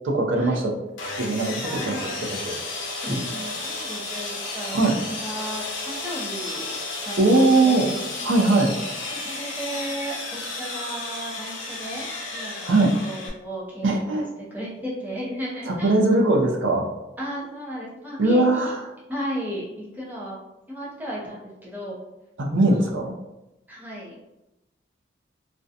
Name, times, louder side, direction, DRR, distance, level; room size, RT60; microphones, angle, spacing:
voice 1, 0.0-0.7 1.2-2.5 4.7-5.0 7.2-7.9 8.2-8.8 12.6-13.0 13.8-14.3 15.7-16.9 18.2-18.9 22.4-23.1, right 2 dB, 80° right, -1 dB, 0.5 m, -20 dB
Sawing, 1.0-13.3, left 3 dB, 90° left, 0.6 m, -33 dB
voice 2, 1.6-2.1 3.0-4.8 5.1-6.7 7.1-8.2 9.1-12.0 12.3-13.9 14.1-14.2 14.5-15.9 17.2-18.7 19.1-19.7 19.9-20.4 20.7-22.0 22.7-22.9 23.7-24.1, equal, 10° right, -7 dB, 0.6 m, -34 dB
2.5 x 2.2 x 2.6 m, 0.95 s
head